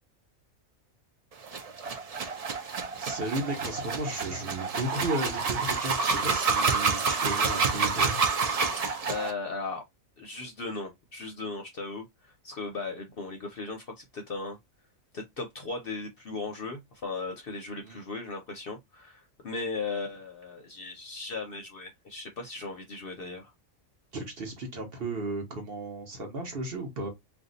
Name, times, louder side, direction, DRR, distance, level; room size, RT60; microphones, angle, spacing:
sound 1, 1.4-9.3, right 5 dB, 80° right, 0.3 m, -28 dB
voice 1, 2.9-8.2 17.8-18.0 24.1-27.1, right 2 dB, 50° right, 1.0 m, -34 dB
voice 2, 9.1-9.8 10.2-14.6 15.1-23.5, left 3 dB, 55° left, 0.7 m, -37 dB
2.6 x 2.3 x 3.8 m
omnidirectional pair, 1.4 m